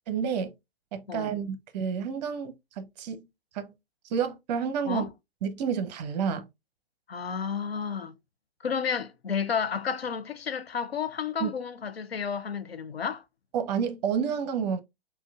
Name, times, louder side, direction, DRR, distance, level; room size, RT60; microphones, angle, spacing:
voice 1, 0.1-0.5 0.9-3.3 3.5-3.7 4.0-5.0 5.4-6.5 11.4-11.5 13.5-14.8, right 7 dB, 45° right, 0.7 m, -30 dB
voice 2, 7.1-8.1 8.6-13.2, left 6 dB, 90° left, 0.6 m, -31 dB
5.6 x 2.3 x 2.3 m
figure-of-eight pair, 110°, 29 cm